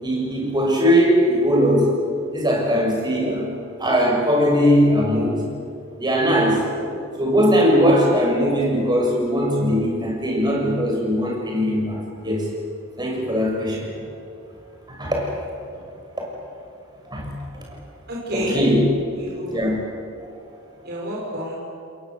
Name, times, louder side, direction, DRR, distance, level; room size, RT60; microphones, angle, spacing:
voice 1, 0.0-1.9 2.3-3.5 3.8-5.4 6.0-6.6 7.2-12.4 13.0-13.9 15.0-15.3 17.1-17.3 18.3-18.8 19.5-19.8, equal, 20° right, -1 dB, 6.7 m, -19 dB
voice 2, 18.1-18.7 19.1-19.6 20.8-21.5, equal, 50° right, -5 dB, 5.5 m, -29 dB
29.5 x 21.5 x 8.2 m, 2.4 s
head